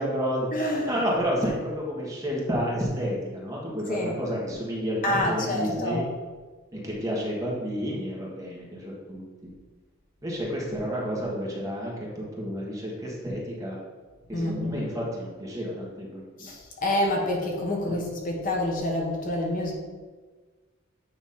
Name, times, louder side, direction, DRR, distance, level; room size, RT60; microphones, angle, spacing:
voice 1, 0.0-0.5 0.9-6.0 6.7-9.2 10.2-13.8 14.3-16.5 17.8-18.0, equal, 15° right, -4 dB, 1.5 m, -30 dB
voice 2, 0.5-0.9 3.9-4.1 5.0-6.1 14.3-14.8 16.4-19.7, left 1 dB, 45° left, 0 dB, 1.1 m, -27 dB
9.0 x 3.0 x 5.6 m, 1.4 s
head